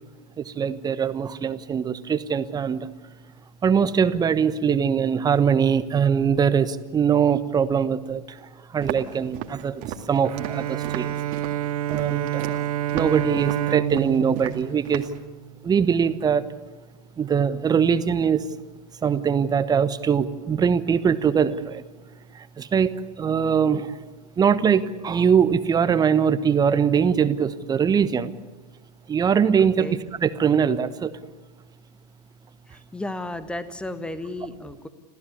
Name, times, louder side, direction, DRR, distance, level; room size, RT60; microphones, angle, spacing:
voice 1, 0.6-2.9 3.6-8.2 8.7-9.8 10.1-11.1 11.9-12.6 12.9-15.0 15.6-16.4 17.2-18.4 19.0-21.8 22.6-23.9 24.4-28.3 29.1-29.9 30.2-31.1, right 7 dB, 20° right, 14 dB, 1.2 m, -22 dB
Walk footsteps, 8.8-15.2, right 10 dB, 40° right, 2.0 m, -36 dB
Bowed string instrument, 10.2-15.7, right 12 dB, 60° right, 1.3 m, -28 dB
voice 2, 32.7-34.9, left 1 dB, 5° left, 12 dB, 1.5 m, -33 dB
27.0 x 16.0 x 9.8 m, 1.2 s
figure-of-eight pair, 95°, 21 cm